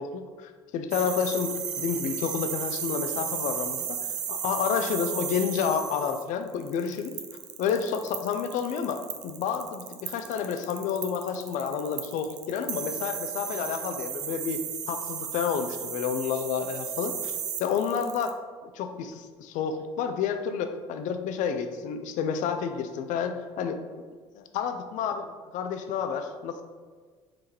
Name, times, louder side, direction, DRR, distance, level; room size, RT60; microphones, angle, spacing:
voice 1, 0.0-4.0 4.3-7.2 7.6-14.6 14.9-17.3 17.6-23.8 24.4-26.6, left 7 dB, 55° left, 8 dB, 0.5 m, -30 dB
sound 1, 0.9-18.3, right 8 dB, 50° right, 0.6 m, -35 dB
4.8 x 3.5 x 3.1 m, 1.5 s
hypercardioid pair, 60°, 15 cm